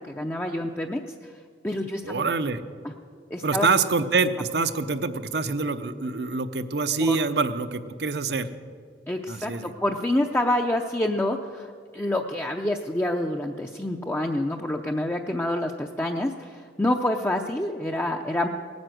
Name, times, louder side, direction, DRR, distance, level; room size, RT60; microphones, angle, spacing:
voice 1, 0.0-1.3 1.6-2.2 2.8-2.9 3.3-3.7 7.0-7.2 9.1-18.5, left 1 dB, 15° left, 2 dB, 0.5 m, -27 dB
voice 2, 2.0-2.6 3.4-8.5 9.3-9.7, right 4 dB, 70° right, 11 dB, 0.7 m, -25 dB
18.0 x 9.5 x 7.7 m, 2.1 s
head